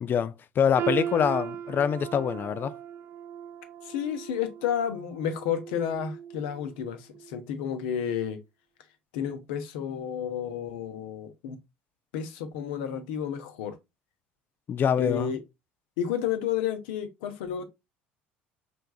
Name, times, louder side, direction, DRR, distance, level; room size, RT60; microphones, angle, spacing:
voice 1, 0.0-2.7 14.7-15.3, left 8 dB, 35° left, 0.4 m, -25 dB
sound 1, 0.8-6.7 7.1-7.4 8.1-8.2, right 9 dB, 45° right, 0.4 m, -37 dB
voice 2, 3.8-8.4 9.1-11.6 12.1-13.7 15.0-15.4 16.0-17.6, left 8 dB, 65° left, 0.9 m, -31 dB
5.2 x 3.3 x 2.2 m
figure-of-eight pair, 65°, 6 cm